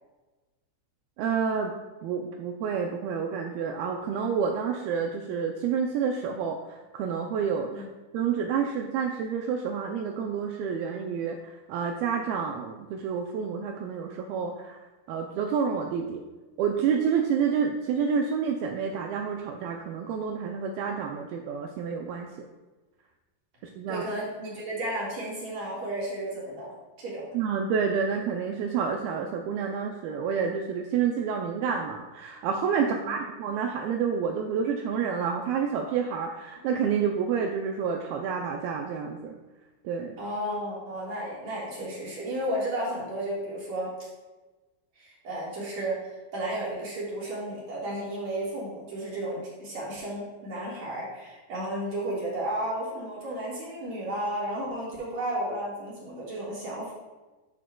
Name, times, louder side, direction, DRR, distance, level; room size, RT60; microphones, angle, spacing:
voice 1, 1.2-1.7 2.0-7.8 8.1-16.2 16.6-22.3 23.8-24.0 27.3-39.3 39.8-40.2, right 6 dB, 90° right, 3 dB, 2.1 m, -29 dB
voice 2, 23.9-27.3 32.8-33.1 40.2-44.1 45.0-56.9, right 1 dB, 55° right, -6 dB, 2.4 m, -33 dB
11.5 x 6.0 x 2.2 m, 1.2 s
omnidirectional pair, 4.8 m